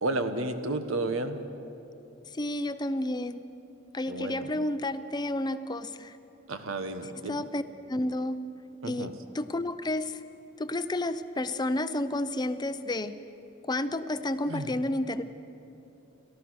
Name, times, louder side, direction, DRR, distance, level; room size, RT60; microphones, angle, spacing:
voice 1, 0.0-1.4 4.1-4.5 6.5-7.4 8.8-9.1 14.5-14.7, right 2 dB, 85° right, 8 dB, 1.4 m, -32 dB
voice 2, 2.3-3.4 3.9-6.1 7.2-7.6 7.9-8.4 8.9-9.1 9.3-10.2 10.6-13.1 13.7-15.2, left 1 dB, 20° left, 11 dB, 0.6 m, -31 dB
29.5 x 14.0 x 6.4 m, 2.8 s
head